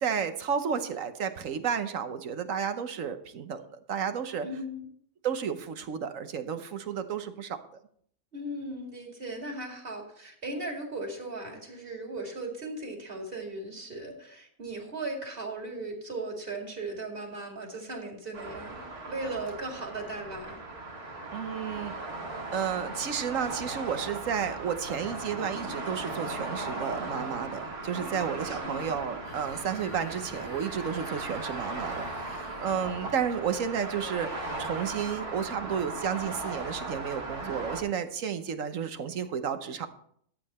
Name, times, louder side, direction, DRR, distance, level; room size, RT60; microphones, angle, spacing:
voice 1, 0.0-4.5 5.2-7.6 21.3-22.0 22.5-39.9, right 7 dB, 65° right, 9 dB, 1.2 m, -32 dB
voice 2, 4.4-4.9 8.3-18.8 19.1-20.6 27.9-28.8, right 2 dB, 40° right, 1 dB, 2.6 m, -37 dB
sound 1, 18.3-37.8, right 3 dB, 90° right, 2.6 m, -38 dB
sound 2, 29.2-34.5, left 7 dB, 50° left, 0.5 m, -48 dB
12.5 x 8.6 x 4.2 m, 0.64 s
omnidirectional pair, 1.6 m